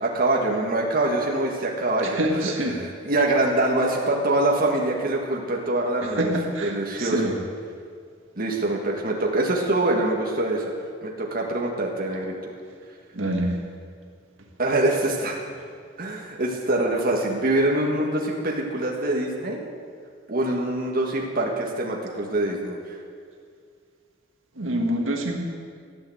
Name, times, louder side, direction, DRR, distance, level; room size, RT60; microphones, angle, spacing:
voice 1, 0.0-6.3 6.6-7.3 8.4-10.7 11.0-12.5 14.6-15.4 16.0-19.6 20.3-23.0, right 2 dB, 45° right, -1 dB, 1.8 m, -24 dB
voice 2, 2.2-2.8 6.2-7.3 13.1-13.6 24.6-25.4, right 1 dB, 75° right, 1 dB, 1.8 m, -26 dB
14.5 x 8.8 x 7.8 m, 2.1 s
head